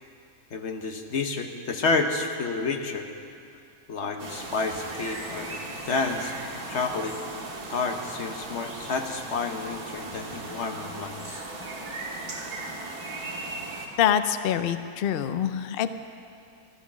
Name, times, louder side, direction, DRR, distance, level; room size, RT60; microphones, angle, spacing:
voice 1, 0.5-3.1 3.9-5.6 5.9-6.3 6.7-7.1 7.7-11.4, left 4 dB, 50° left, 4 dB, 1.3 m, -29 dB
sound 1, 4.2-13.9, right 2 dB, 85° right, 2.2 m, -37 dB
voice 2, 14.0-15.9, left 9 dB, 80° left, 11 dB, 0.5 m, -25 dB
14.0 x 12.5 x 6.2 m, 2.5 s
omnidirectional pair, 1.6 m